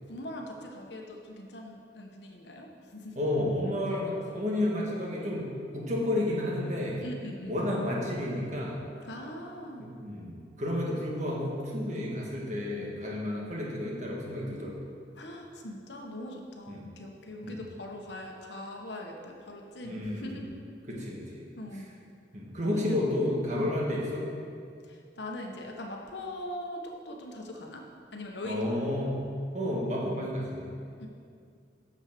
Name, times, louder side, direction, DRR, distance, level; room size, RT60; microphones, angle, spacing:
voice 1, 0.1-3.3 7.0-7.6 9.1-9.9 12.0-12.1 15.2-20.5 21.6-21.9 22.6-22.9 23.5-23.7 24.9-27.8 28.1-28.8 31.0-31.1, left 1 dB, 80° left, 1 dB, 1.3 m, -41 dB
voice 2, 3.1-5.5 5.7-7.0 7.5-8.8 9.8-14.8 16.7-16.9 17.4-17.6 19.8-20.5 20.9-21.4 21.7-21.8 22.3-24.2 28.5-29.2 29.5-30.7, left 1 dB, 40° right, -3 dB, 1.8 m, -31 dB
8.2 x 7.4 x 6.1 m, 2.3 s
head